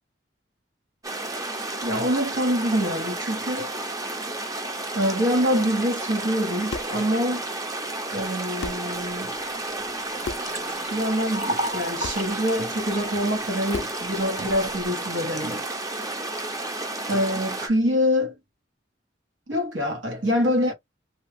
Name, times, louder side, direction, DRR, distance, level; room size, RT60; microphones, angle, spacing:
sound 1, 1.0-17.7, right 2 dB, 20° right, 0.6 m, -32 dB
voice 1, 1.8-3.7 4.9-7.5 8.1-9.3 10.9-15.7 17.1-18.4 19.5-20.7, equal, 90° right, 1.5 m, -25 dB
sound 2, 6.7-7.0 8.2-8.3 8.6-8.9 10.2-10.6 12.0-12.3 13.7-14.1, left 3 dB, 70° left, 0.4 m, -34 dB
Liquid, 9.3-9.4 9.8-13.8 14.4-14.9, equal, 40° right, 1.1 m, -34 dB
2.8 x 2.3 x 3.5 m
head